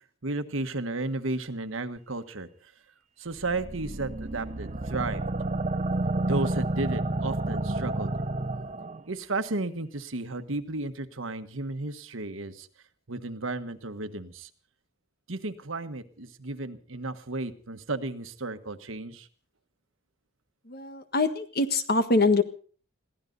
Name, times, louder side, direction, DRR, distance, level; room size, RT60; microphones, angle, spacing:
voice 1, 0.2-2.5 3.2-5.2 6.2-8.1 9.1-12.7 13.1-14.5 15.3-19.3, right 2 dB, 70° right, 9 dB, 1.4 m, -33 dB
sound 1, 3.4-9.0, right 2 dB, 35° right, 0.8 m, -30 dB
voice 2, 20.7-22.4, left 3 dB, 50° left, 9 dB, 1.5 m, -24 dB
22.0 x 16.0 x 4.0 m, 0.42 s
head